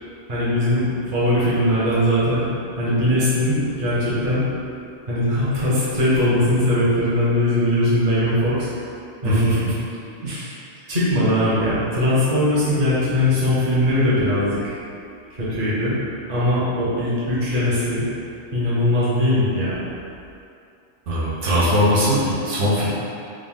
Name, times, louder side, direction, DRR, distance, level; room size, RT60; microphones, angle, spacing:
voice 1, 0.3-2.4 2.8-4.4 5.1-8.7 9.2-9.5 10.9-14.8 15.4-16.0 16.3-18.0 18.5-19.8, left 1 dB, 45° right, -9 dB, 1.1 m, -20 dB
voice 2, 9.2-9.7 10.2-10.5 21.1-22.9, equal, 85° right, -9 dB, 1.2 m, -20 dB
3.7 x 2.6 x 3.6 m, 2.6 s
omnidirectional pair, 1.2 m